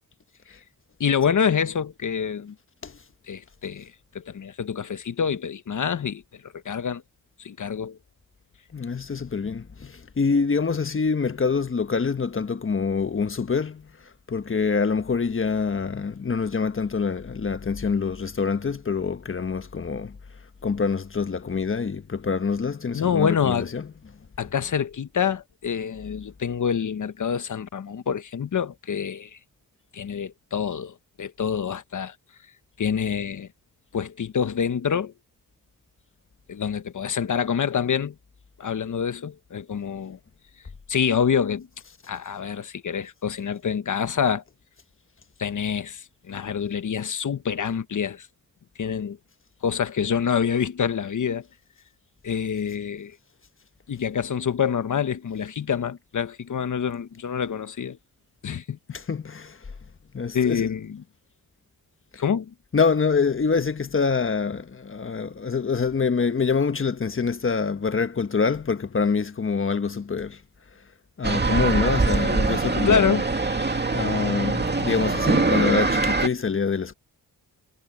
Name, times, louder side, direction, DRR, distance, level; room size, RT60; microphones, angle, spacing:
voice 1, 1.0-2.5 3.3-7.0 7.4-8.0 22.9-23.7 24.4-29.4 29.9-32.1 32.8-33.5 33.9-35.1 36.5-38.1 38.6-40.2 40.9-41.7 42.1-44.4 45.4-48.3 48.8-49.2 49.6-51.4 52.2-53.2 53.9-58.0 58.4-58.8 60.3-61.0 62.2-62.5 72.8-73.2, left 7 dB, 55° left, 1.3 m, -26 dB
voice 2, 8.7-20.2 20.6-24.2 24.4-24.5 58.9-59.6 60.1-60.7 62.7-70.4 71.2-73.2 73.9-76.9, left 5 dB, 35° left, 1.3 m, -25 dB
sound 1, 71.2-76.3, right 3 dB, 25° right, 2.4 m, -23 dB
cardioid pair, 80°, 37 cm